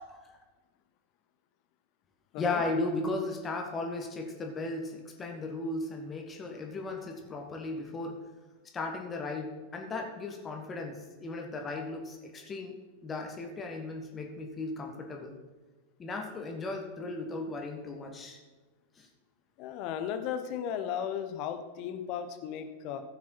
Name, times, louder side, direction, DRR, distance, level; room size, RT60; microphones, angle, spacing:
voice 1, 2.4-8.2 8.7-12.7 13.0-15.3 16.0-18.4 19.0-19.1, left 2 dB, 20° left, 2 dB, 1.5 m, -36 dB
voice 2, 19.6-23.0, left 8 dB, 40° left, 7 dB, 1.1 m, -35 dB
15.5 x 6.0 x 4.6 m, 1.3 s
figure-of-eight pair, 90°, 0 cm